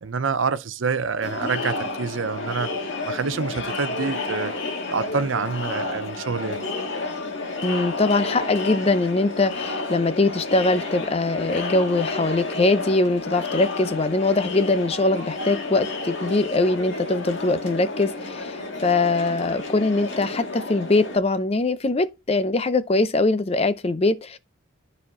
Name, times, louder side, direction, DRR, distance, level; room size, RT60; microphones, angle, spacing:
voice 1, 0.0-2.7 3.0-4.5 4.9-6.6, right 5 dB, 75° right, 0.6 m, -27 dB
Crowd, 1.2-21.2, left 3 dB, 70° left, 1.7 m, -31 dB
voice 2, 7.6-24.4, left 2 dB, 30° left, 0.5 m, -22 dB
12.0 x 4.2 x 3.7 m
head